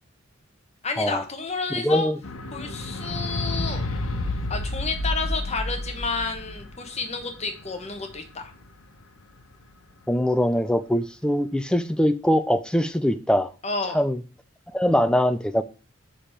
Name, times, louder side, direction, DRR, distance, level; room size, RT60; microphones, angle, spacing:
voice 1, 0.8-2.1 2.5-3.9 4.5-8.5 13.6-14.0, left 4 dB, 30° left, 1.0 m, -30 dB
voice 2, 1.7-2.2 10.1-13.5 13.9-14.2 14.7-15.6, equal, 5° left, 0.4 m, -22 dB
sound 1, 2.2-8.7 9.5-9.6, left 1 dB, 90° left, 1.0 m, -30 dB
5.1 x 5.0 x 5.7 m
head